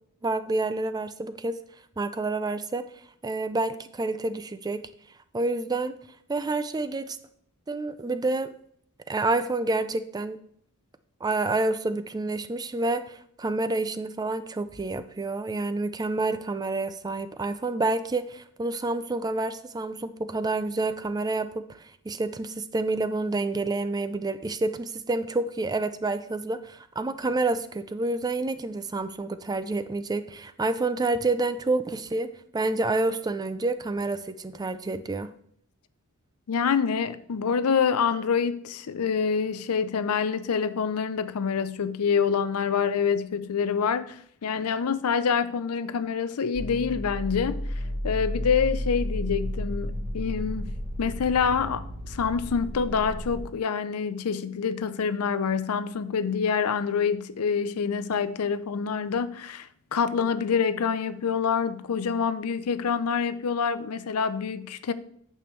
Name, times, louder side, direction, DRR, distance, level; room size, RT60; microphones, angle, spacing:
voice 1, 0.2-1.6 2.0-2.8 3.2-4.9 5.3-5.9 6.3-7.2 7.7-8.5 9.1-10.4 11.2-35.3, right 2 dB, 20° right, 0.4 m, -28 dB
voice 2, 36.5-47.6 48.0-64.9, left 6 dB, 90° left, 0.5 m, -26 dB
sound 1, 46.5-53.4, equal, 40° right, 2.8 m, -32 dB
8.8 x 6.9 x 3.2 m
head